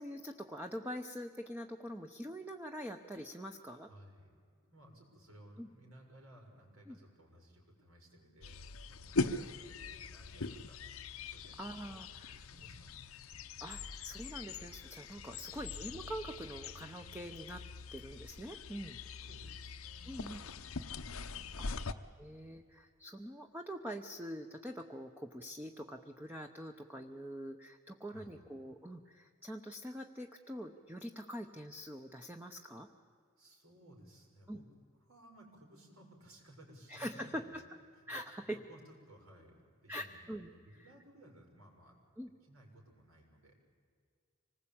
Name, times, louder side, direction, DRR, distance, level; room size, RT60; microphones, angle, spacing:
voice 1, 0.0-3.9 5.6-5.7 6.9-7.0 9.3-9.4 11.6-12.5 13.6-17.6 17.9-19.0 20.1-20.4 21.6-21.7 22.2-32.9 34.5-34.6 36.9-37.6 38.1-38.6 39.9-40.5 42.2-42.3, equal, 10° right, 4 dB, 0.8 m, -44 dB
voice 2, 3.3-4.4 4.6-8.6 8.9-10.8 11.2-11.7 12.2-13.0 15.3-15.5 19.2-20.6 21.0-21.7 28.1-28.4 33.4-34.7 35.0-37.6 37.9-42.0 42.5-43.5, right 1 dB, 80° right, 1 dB, 5.9 m, -59 dB
sound 1, 8.4-21.9, left 3 dB, 80° left, 0.9 m, -42 dB
26.0 x 19.5 x 8.8 m, 2.1 s
head